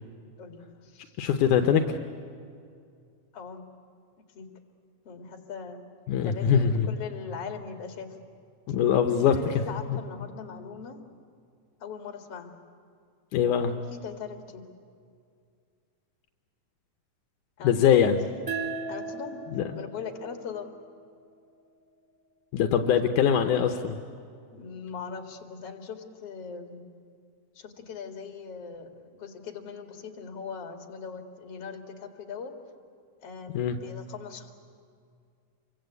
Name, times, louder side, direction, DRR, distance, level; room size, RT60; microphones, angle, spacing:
voice 1, 0.4-1.2 3.3-3.6 4.3-4.5 5.0-5.8 6.2-8.2 9.1-11.0 11.8-12.6 13.7-14.6 17.6-18.0 18.9-19.4 19.7-20.7 24.5-26.8 27.5-32.5 33.2-34.5, left 6 dB, 50° left, 4 dB, 2.9 m, -40 dB
voice 2, 1.2-2.0 6.1-6.9 8.7-9.4 13.3-13.8 17.6-18.2 19.5-19.6 22.5-24.0 33.6-33.8, left 8 dB, 80° left, 6 dB, 2.4 m, -22 dB
sound 1, 18.5-21.7, right 4 dB, 5° right, 2.2 m, -38 dB
27.5 x 24.0 x 8.2 m, 2.3 s
omnidirectional pair, 3.6 m